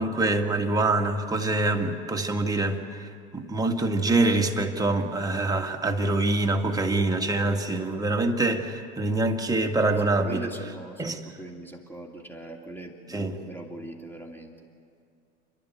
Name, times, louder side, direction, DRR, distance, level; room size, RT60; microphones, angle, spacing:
voice 1, 0.0-10.4 11.0-11.2 13.1-13.3, right 2 dB, 10° right, 1.8 m, -25 dB
voice 2, 9.9-14.5, right 1 dB, 5° left, 2.9 m, -40 dB
29.0 x 11.5 x 9.2 m
figure-of-eight pair, 80°, 34 cm